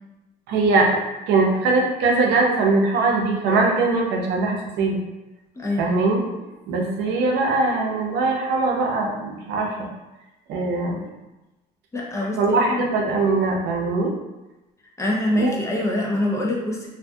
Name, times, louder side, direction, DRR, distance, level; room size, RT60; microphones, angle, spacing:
voice 1, 0.5-1.0 1.3-5.0 5.8-6.2 6.7-9.7 10.5-11.0 12.3-14.1 15.3-15.5, right 3 dB, 85° right, 0 dB, 0.5 m, -21 dB
voice 2, 5.6-5.9 11.9-12.4 12.8-12.9 15.0-16.9, left 1 dB, 15° left, -2 dB, 0.5 m, -24 dB
2.5 x 2.2 x 2.6 m, 1.0 s
cardioid pair, 110°, 17 cm